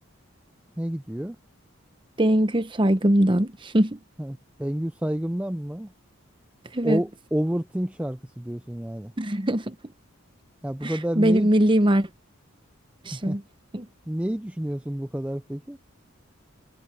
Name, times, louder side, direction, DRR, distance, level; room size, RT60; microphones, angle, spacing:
voice 1, 0.8-1.4 4.2-5.9 6.8-9.1 10.6-11.5 13.1-13.4 14.1-15.8, equal, 5° right, 0.5 m, -29 dB
voice 2, 2.2-4.0 6.7-7.0 9.2-9.7 10.8-12.1 13.0-13.4 13.7-13.9, right 1 dB, 25° right, 0.9 m, -21 dB
head